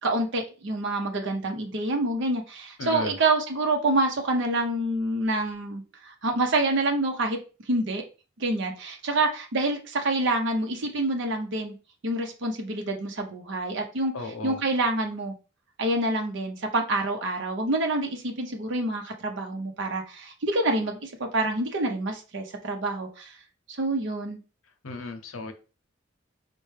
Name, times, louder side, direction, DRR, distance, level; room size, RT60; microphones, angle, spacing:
voice 1, 0.0-7.4 7.7-8.0 8.4-11.7 12.0-15.3 15.8-23.4 23.7-24.4, right 2 dB, 65° right, 0.7 m, -27 dB
voice 2, 2.8-3.1 14.1-14.6 24.8-25.5, left 3 dB, 90° left, 0.7 m, -35 dB
4.4 x 2.1 x 3.2 m
head